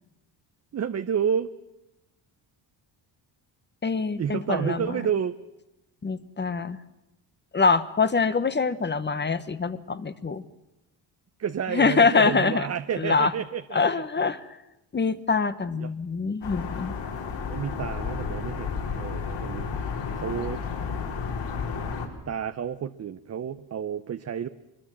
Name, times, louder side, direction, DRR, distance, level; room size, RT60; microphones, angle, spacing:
voice 1, 0.7-1.5 4.2-5.3 11.4-14.0 15.8-15.9 17.5-20.6 22.3-24.5, right 8 dB, 35° right, 10 dB, 0.8 m, -30 dB
voice 2, 3.8-5.0 6.0-6.8 7.5-10.4 11.7-12.7 13.0-13.3 13.7-14.4 14.9-17.0, left 4 dB, 25° left, 13 dB, 1.1 m, -24 dB
sound 1, 16.4-22.1, left 5 dB, 65° left, 4.7 m, -32 dB
23.5 x 21.5 x 7.5 m, 0.92 s
cardioid pair, 105°, 45 cm